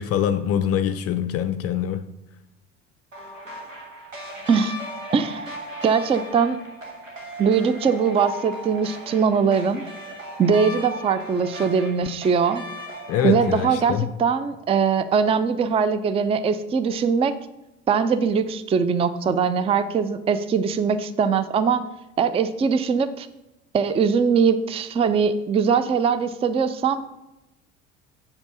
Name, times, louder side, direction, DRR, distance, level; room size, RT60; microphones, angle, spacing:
voice 1, 0.0-2.0 13.1-14.1, left 9 dB, 40° left, 0.5 m, -24 dB
sound 1, 3.1-13.9, equal, 90° right, 1.4 m, -37 dB
voice 2, 5.1-5.5 5.8-6.6 7.4-9.8 10.4-12.6 13.2-17.4 17.9-21.8 22.2-23.3 23.7-27.0, right 6 dB, 15° right, 0.4 m, -21 dB
7.2 x 5.2 x 6.1 m
figure-of-eight pair, 60°, 38 cm